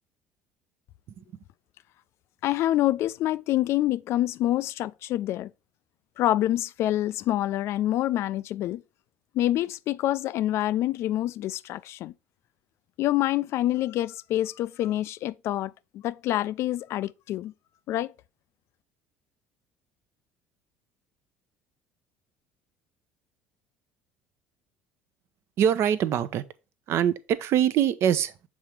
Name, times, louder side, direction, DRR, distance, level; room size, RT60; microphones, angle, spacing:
voice 1, 2.4-5.5 6.2-8.8 9.3-12.1 13.0-17.5 17.9-18.1, left 14 dB, 55° left, 0.3 m, -26 dB
voice 2, 25.6-26.4 26.9-28.5, right 9 dB, 55° right, 0.6 m, -23 dB
7.3 x 3.7 x 4.6 m
hypercardioid pair, 60°, 5 cm